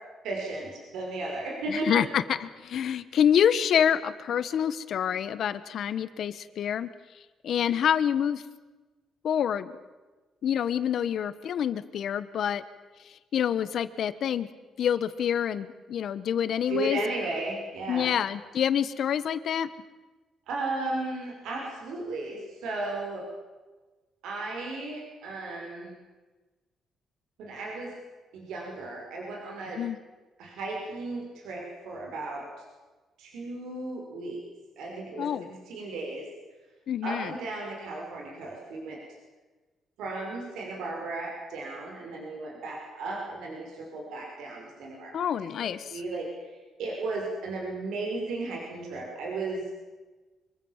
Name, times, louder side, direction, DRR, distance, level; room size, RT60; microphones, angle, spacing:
voice 1, 0.2-1.9 16.7-18.1 20.5-23.3 24.2-25.9 27.4-27.9 28.3-29.8 30.4-32.5 33.2-34.4 34.8-36.3 37.0-39.0 40.0-45.3 45.6-49.6, right 2 dB, 85° right, 0 dB, 5.9 m, -35 dB
voice 2, 1.7-6.9 7.4-8.4 9.2-9.7 10.4-12.6 13.0-14.5 14.8-17.0 17.9-19.7 29.8-30.0 35.2-35.5 36.9-37.3 45.1-46.0, left 9 dB, 60° left, 14 dB, 1.3 m, -27 dB
25.0 x 23.5 x 7.4 m, 1.3 s
cardioid pair, 130°, 0 cm